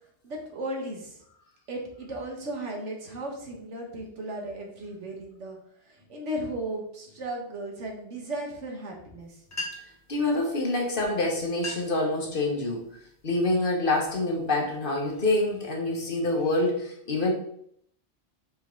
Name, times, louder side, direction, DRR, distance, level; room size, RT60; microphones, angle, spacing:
voice 1, 0.2-1.2 1.7-5.6 5.8-9.4, right 1 dB, 85° right, 1 dB, 1.6 m, -35 dB
sound 1, 9.2-9.3 9.5-10.1 11.0-11.1 11.5-12.1 12.6-12.9 13.5-13.8 14.3-15.6, left 2 dB, 15° left, 0.9 m, -39 dB
voice 2, 10.1-12.8 13.2-17.3, left 2 dB, 50° left, 0 dB, 1.4 m, -26 dB
5.3 x 4.8 x 3.8 m, 0.68 s
omnidirectional pair, 1.2 m